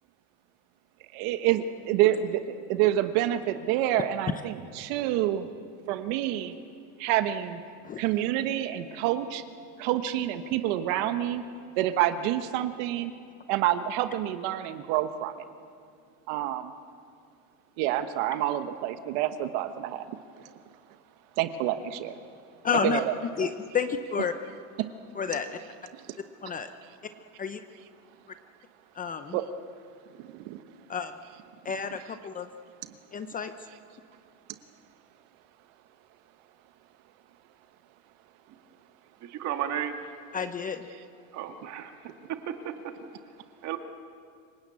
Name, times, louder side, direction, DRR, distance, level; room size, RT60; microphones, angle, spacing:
voice 1, 1.1-5.5 5.9-6.5 7.0-7.6 8.0-9.4 9.8-11.4 11.8-13.1 13.5-15.3 16.3-16.7 17.8-20.1 21.4-22.1 22.7-23.5 24.2-24.3 25.9-26.0 29.3-29.4 30.2-30.6 31.9-32.2 40.9-41.0, right 12 dB, 55° right, 10 dB, 1.2 m, -28 dB
voice 2, 22.6-23.0 23.4-24.3 25.2-25.6 26.4-26.7 27.4-27.6 29.0-29.4 30.9-31.1 31.6-32.5 33.1-33.5 40.3-40.9, left 6 dB, 20° left, 9 dB, 0.7 m, -30 dB
voice 3, 39.2-39.9 41.3-41.9 42.5-43.1 43.6-43.8, right 10 dB, 40° right, 6 dB, 2.0 m, -34 dB
27.0 x 17.5 x 8.5 m, 2.3 s
supercardioid pair, 140°, 45 cm